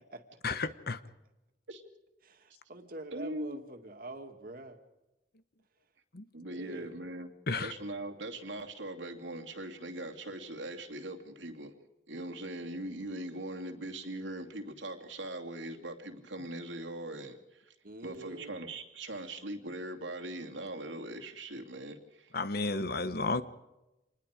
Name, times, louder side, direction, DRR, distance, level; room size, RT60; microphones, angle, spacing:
voice 1, 0.4-1.0 6.1-6.3 7.5-7.7 22.3-23.4, left 3 dB, 55° left, 13 dB, 1.1 m, -32 dB
voice 2, 2.2-4.8 6.5-7.0 17.8-18.5, right 2 dB, 50° right, 5 dB, 2.3 m, -45 dB
voice 3, 3.1-3.6 6.3-7.3 7.6-11.7 12.1-17.7 18.0-22.3, right 1 dB, 85° right, 3 dB, 2.7 m, -41 dB
27.5 x 20.5 x 5.1 m, 0.99 s
head